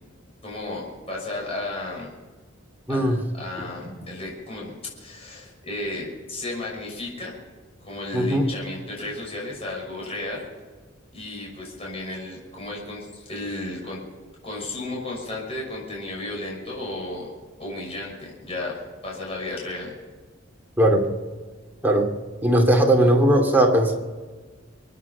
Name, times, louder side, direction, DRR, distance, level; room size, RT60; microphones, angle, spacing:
voice 1, 0.4-2.1 2.9-7.4 7.8-10.5 11.1-14.0 14.4-17.3 17.6-20.0, left 2 dB, 30° left, -3 dB, 6.2 m, -34 dB
voice 2, 8.1-8.4 20.8-21.1 21.8-22.1 22.4-24.0, right 1 dB, 10° right, 0 dB, 2.8 m, -18 dB
25.5 x 9.6 x 5.7 m, 1.3 s
head